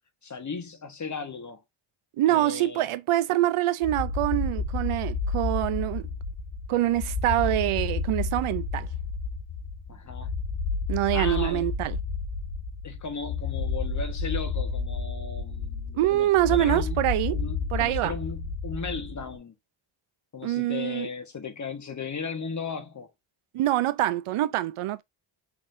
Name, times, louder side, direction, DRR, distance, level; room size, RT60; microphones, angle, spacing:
voice 1, 0.2-1.6 2.3-2.9 9.9-10.3 11.1-11.7 12.8-17.0 17.3-19.5 20.3-23.1, left 5 dB, 35° left, 1.3 m, -36 dB
voice 2, 2.2-6.1 6.7-8.9 10.9-12.0 15.9-17.4 17.7-18.1 20.4-21.1 23.5-25.0, right 14 dB, 85° right, 0.6 m, -25 dB
sound 1, 3.8-19.4, left 4 dB, 70° left, 1.9 m, -31 dB
4.9 x 3.7 x 2.6 m
wide cardioid pair, 125°, 49 cm